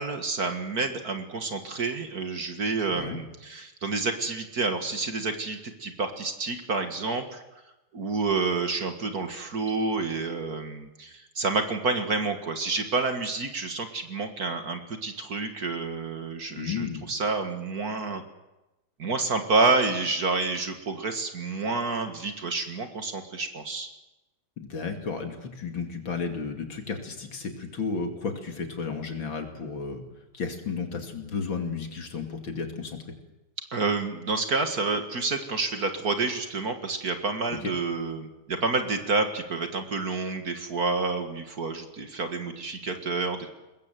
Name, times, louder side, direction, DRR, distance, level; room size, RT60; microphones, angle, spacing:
voice 1, 0.0-7.4 7.9-18.2 19.0-23.9 33.7-43.5, right 3 dB, 45° right, 6 dB, 2.1 m, -29 dB
voice 2, 16.5-17.1 24.6-30.0 30.3-33.0 37.6-37.7, left 5 dB, 65° left, 4 dB, 3.3 m, -33 dB
23.0 x 20.5 x 7.7 m, 0.99 s
omnidirectional pair, 2.3 m